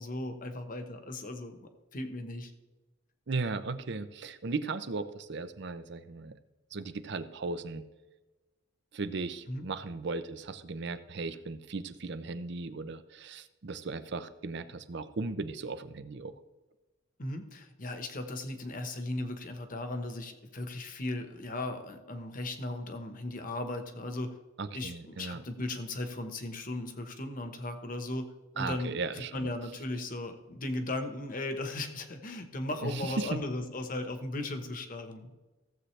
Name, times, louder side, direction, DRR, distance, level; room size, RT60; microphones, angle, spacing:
voice 1, 0.0-1.6 1.9-2.5 9.5-9.7 17.2-24.3 24.7-28.3 28.5-35.3, left 2 dB, 45° left, 7 dB, 1.2 m, -37 dB
voice 2, 3.3-6.3 6.7-7.8 8.9-16.3 24.6-25.4 28.6-29.5 32.8-33.4, right 3 dB, 65° right, 12 dB, 0.6 m, -36 dB
15.5 x 7.6 x 3.3 m, 1.1 s
head